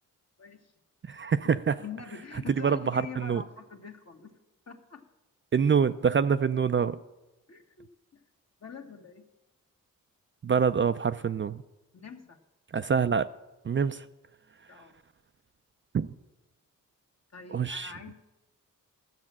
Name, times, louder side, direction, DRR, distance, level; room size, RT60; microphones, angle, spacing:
voice 1, 0.4-0.7 1.4-1.5 1.8-4.4 4.7-5.0 7.5-7.9 8.1-8.2 8.6-9.2 11.9-12.4 14.7-15.0 17.3-18.1, left 5 dB, 50° left, 4 dB, 1.6 m, -44 dB
voice 2, 1.1-1.7 2.6-3.4 5.5-7.0 10.4-11.6 12.7-13.3 13.7-14.0 15.9-16.1 17.5-17.9, right 6 dB, 35° right, 11 dB, 0.4 m, -25 dB
12.0 x 7.4 x 7.4 m, 1.0 s
cardioid pair, 55°, 34 cm